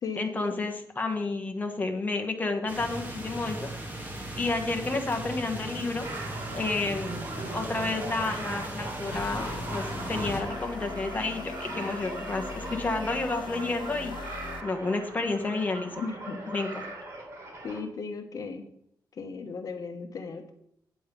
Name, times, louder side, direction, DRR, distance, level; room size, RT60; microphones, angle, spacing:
voice 1, 0.2-4.1 4.3-6.1 6.5-7.2 7.5-14.2 14.6-16.1 16.5-16.9, left 3 dB, 20° left, 4 dB, 1.1 m, -31 dB
sound 1, 2.7-10.4, right 1 dB, 20° right, 2.2 m, -37 dB
sound 2, 6.0-17.8, right 2 dB, 35° right, 3.4 m, -40 dB
sound 3, 9.1-14.6, left 4 dB, 85° left, 1.0 m, -40 dB
voice 2, 16.0-16.4 17.6-18.7 19.1-20.5, left 4 dB, 50° left, 6 dB, 1.0 m, -36 dB
9.1 x 7.8 x 5.2 m, 0.70 s
wide cardioid pair, 140°, 8 cm